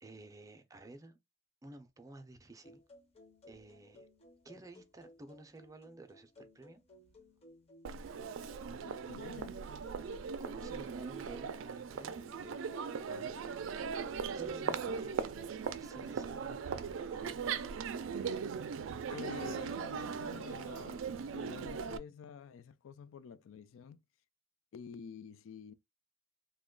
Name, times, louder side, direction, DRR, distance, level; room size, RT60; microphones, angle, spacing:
voice 1, 0.0-1.2 1.6-2.8 3.5-4.1 4.4-6.8 10.4-12.2 14.3-15.1 15.6-16.7 17.0-17.6, right 2 dB, 15° right, 0.4 m, -53 dB
sound 1, 2.6-17.1, left 1 dB, 30° left, 0.6 m, -60 dB
Crowd, 7.8-22.0, right 6 dB, 75° right, 0.4 m, -39 dB
voice 2, 8.8-9.6 12.4-13.4 19.1-24.0 24.7-25.7, left 6 dB, 85° left, 0.3 m, -49 dB
2.9 x 2.2 x 3.7 m
head